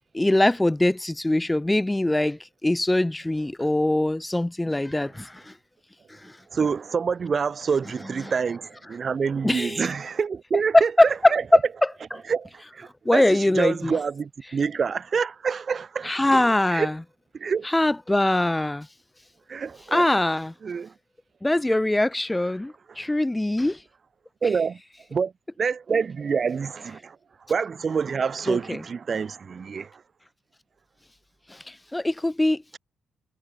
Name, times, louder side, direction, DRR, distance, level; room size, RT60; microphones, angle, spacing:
voice 1, 0.1-5.5 6.1-6.4 8.2-8.3 9.4-9.9 10.7-11.9 13.0-14.0 16.0-17.0 17.6-18.9 19.9-20.5 21.4-23.8 28.5-28.8 31.5-32.6, left 1 dB, 10° left, 2.9 m, -22 dB
voice 2, 6.5-11.4 12.3-16.2 16.7-16.9 17.3-17.7 19.5-20.1 20.6-20.9 24.4-24.8 25.1-25.3 25.6-27.2 27.5-29.9, right 6 dB, 35° right, 6.4 m, -27 dB
cardioid pair, 130°, 0 cm